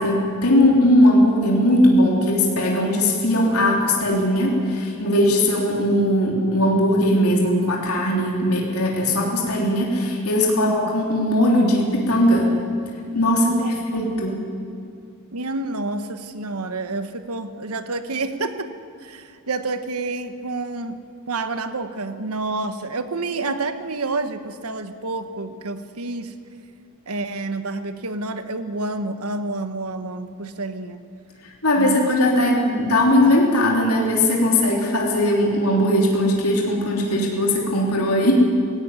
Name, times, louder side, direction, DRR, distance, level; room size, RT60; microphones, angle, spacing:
voice 1, 0.0-12.5 13.1-13.5 13.9-14.4 31.6-38.3, left 1 dB, 80° left, -1 dB, 3.5 m, -19 dB
voice 2, 13.4-13.7 14.3-14.4 15.3-18.7 19.0-20.9 21.3-26.3 27.1-31.0 31.8-32.1, right 2 dB, 80° right, 10 dB, 1.3 m, -29 dB
17.0 x 17.0 x 9.6 m, 2.3 s
head